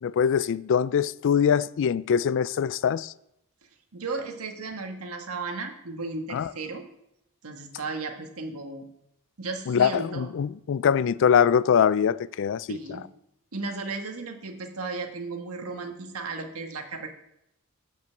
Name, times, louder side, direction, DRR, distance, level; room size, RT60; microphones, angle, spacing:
voice 1, 0.0-3.1 6.3-6.5 9.7-12.8, left 7 dB, 60° left, 0.3 m, -23 dB
voice 2, 3.9-6.8 7.4-8.8 9.4-10.3 12.7-13.0 13.5-17.1, right 3 dB, 75° right, 1.6 m, -35 dB
10.5 x 5.7 x 7.7 m
head